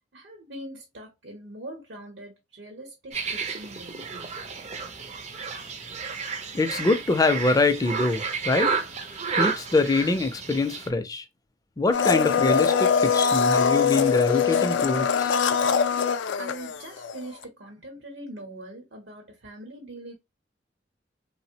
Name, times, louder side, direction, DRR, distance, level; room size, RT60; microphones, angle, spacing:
voice 1, 0.1-4.3 16.4-20.1, right 1 dB, 75° right, 0.8 m, -42 dB
sound 1, 3.1-10.9, right 5 dB, 40° right, 0.5 m, -31 dB
voice 2, 6.5-8.7 9.3-11.2 11.8-15.4, left 3 dB, 20° left, 0.4 m, -24 dB
Domestic sounds home sounds, 11.9-17.2 17.4-17.5, left 6 dB, 90° left, 0.3 m, -22 dB
3.2 x 2.0 x 2.7 m
head